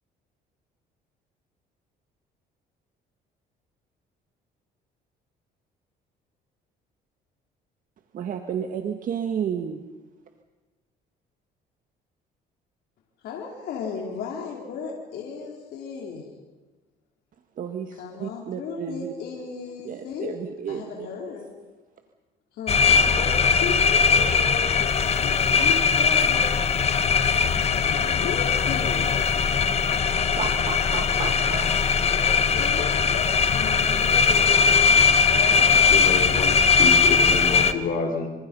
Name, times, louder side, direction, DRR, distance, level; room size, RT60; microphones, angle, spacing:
voice 1, 8.1-9.8 17.6-19.1 19.8-21.1 30.4-31.7, right 8 dB, 55° right, 6 dB, 1.8 m, -32 dB
voice 2, 13.2-16.3 18.0-20.4 20.7-21.5 22.5-26.6 27.8-29.3 31.0-31.5 32.1-35.0 35.3-36.3, left 6 dB, 75° left, -1 dB, 4.5 m, -35 dB
sound 1, 22.7-37.7, left 6 dB, 40° left, 1.3 m, -20 dB
voice 3, 35.7-38.3, left 4 dB, 55° left, 5 dB, 5.6 m, -29 dB
26.5 x 26.0 x 5.6 m, 1.2 s
cardioid pair, 110°, 17 cm